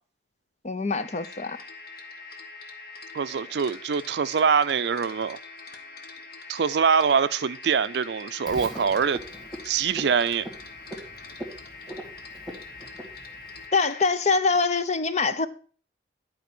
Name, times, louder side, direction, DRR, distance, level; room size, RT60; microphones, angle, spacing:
voice 1, 0.6-1.6 13.7-15.5, left 4 dB, 40° left, 0.6 m, -24 dB
sound 1, 1.0-14.1, left 4 dB, 55° left, 1.3 m, -44 dB
voice 2, 3.1-5.4 6.5-9.2 9.6-10.5, right 6 dB, 60° right, 0.4 m, -24 dB
Frog, 8.5-13.7, right 1 dB, ahead, 1.8 m, -42 dB
11.0 x 4.6 x 6.0 m
head